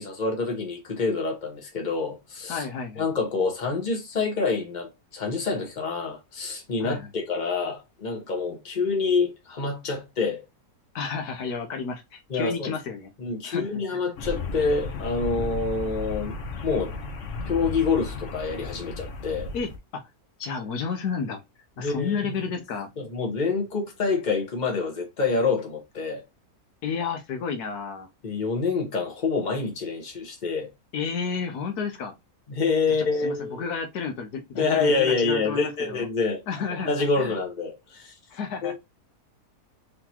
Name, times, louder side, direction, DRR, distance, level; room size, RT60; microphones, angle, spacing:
voice 1, 0.0-2.6 3.0-10.4 12.3-12.7 13.2-16.4 16.6-16.9 17.4-19.5 21.8-22.4 23.0-26.2 28.2-30.7 32.5-33.6 34.5-36.4 36.8-38.1 38.6-38.7, left 4 dB, 30° left, 1.3 m, -27 dB
voice 2, 2.5-3.1 6.8-7.1 10.9-13.1 13.4-14.0 19.5-20.0 20.4-22.9 26.8-28.1 30.9-32.1 33.1-36.1 36.5-37.3 38.3-38.7, left 6 dB, 75° left, 1.4 m, -31 dB
sound 1, 14.2-19.8, left 2 dB, 55° left, 1.2 m, -34 dB
3.8 x 3.6 x 2.9 m
omnidirectional pair, 1.7 m